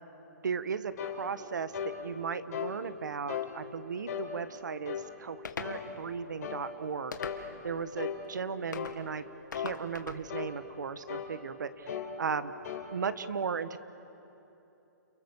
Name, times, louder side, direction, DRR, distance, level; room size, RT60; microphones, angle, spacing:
voice 1, 0.4-9.2 9.5-12.5 12.9-13.8, right 6 dB, 80° right, 13 dB, 1.3 m, -36 dB
sound 1, 1.0-1.2 1.7-2.0 2.5-2.8 3.3-3.5 4.1-4.3 4.9-5.1 5.6-5.9 6.4-6.6 7.2-7.4 8.0-8.2 8.7-9.0 9.5-9.8 10.3-10.5 11.1-11.3 11.9-12.1 12.6-12.9, left 9 dB, 60° left, 4.6 m, -36 dB
sound 2, 5.4-5.8 7.1-7.7 8.7-9.0 9.5-10.2, left 5 dB, 85° left, 1.9 m, -40 dB
29.5 x 28.0 x 7.1 m, 3.0 s
hypercardioid pair, 145°, 10 cm